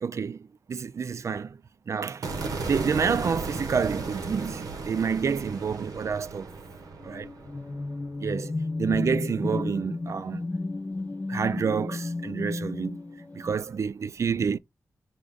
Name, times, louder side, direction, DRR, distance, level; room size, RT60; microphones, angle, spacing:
voice 1, 0.0-0.4 0.7-1.6 1.9-2.3 2.7-6.5 7.0-7.3 8.2-10.4 11.3-13.0 13.4-14.6, right 6 dB, 55° right, 0.3 m, -28 dB
sound 1, 2.2-8.5, right 3 dB, 90° right, 0.8 m, -35 dB
sound 2, 7.0-13.6, left 2 dB, 25° left, 0.4 m, -33 dB
4.0 x 2.4 x 3.4 m
cardioid pair, 60°, 6 cm